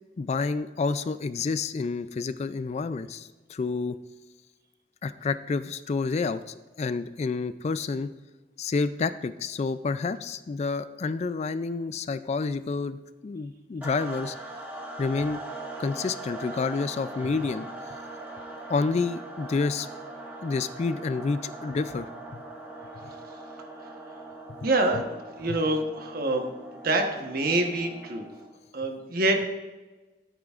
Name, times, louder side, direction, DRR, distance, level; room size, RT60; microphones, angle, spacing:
voice 1, 0.2-4.0 5.0-6.4 6.8-8.1 8.6-14.4 15.0-15.4 15.8-17.7 18.7-19.9 20.4-22.4 25.5-25.6, left 4 dB, 40° left, 13 dB, 0.3 m, -29 dB
sound 1, 13.8-28.6, right 2 dB, 10° right, 1.5 m, -41 dB
voice 2, 24.6-26.5 26.8-28.3 28.7-29.5, right 2 dB, 55° right, 4 dB, 1.1 m, -26 dB
13.0 x 8.7 x 2.5 m, 1.2 s
head